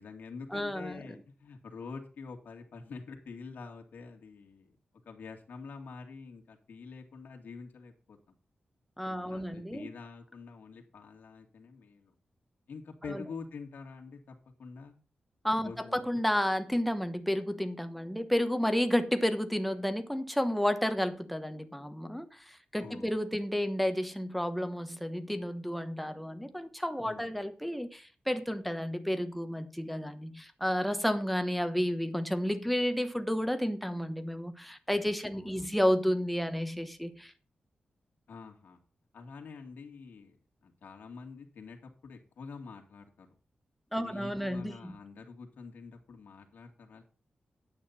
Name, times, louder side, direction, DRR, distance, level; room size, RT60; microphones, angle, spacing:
voice 1, 0.0-4.8 5.1-8.2 9.1-12.1 12.7-15.0 15.6-16.2 22.8-23.1 27.0-27.3 35.3-35.7 38.3-38.8 39.1-40.4 40.6-43.3 44.0-47.0, left 5 dB, 80° left, 2.3 m, -46 dB
voice 2, 0.5-1.0 9.0-9.9 13.1-13.2 15.4-37.3 43.9-45.0, equal, ahead, 1.1 m, -31 dB
10.0 x 8.9 x 4.2 m
wide cardioid pair, 155°, 3 cm